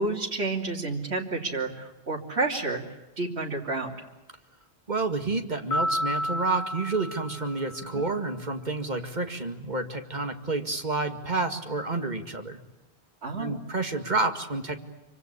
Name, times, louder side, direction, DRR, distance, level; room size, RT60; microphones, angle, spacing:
voice 1, 0.0-2.8 3.2-3.9 7.9-8.0 13.2-13.6, right 3 dB, 80° right, 0 dB, 3.2 m, -30 dB
voice 2, 4.9-12.6 13.4-14.8, right 3 dB, 40° right, 6 dB, 2.2 m, -29 dB
sound 1, 5.7-8.2, left 1 dB, 75° left, 1.8 m, -31 dB
26.5 x 25.0 x 8.3 m, 0.99 s
omnidirectional pair, 1.1 m